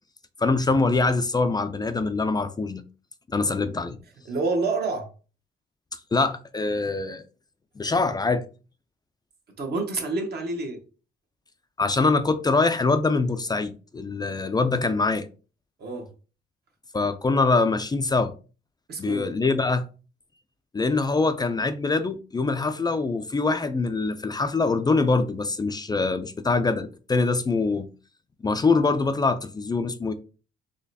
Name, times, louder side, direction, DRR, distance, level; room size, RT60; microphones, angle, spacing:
voice 1, 0.4-2.8 3.3-4.0 6.1-7.2 7.8-8.4 11.8-15.3 16.9-18.3 19.0-19.9 20.7-27.9 28.4-30.1, left 3 dB, 20° left, 0.3 m, -24 dB
voice 2, 4.2-5.1 9.6-10.8 15.8-16.1 18.9-19.2, right 3 dB, 55° right, 1.2 m, -28 dB
3.9 x 3.1 x 2.7 m
cardioid pair, 90°, 20 cm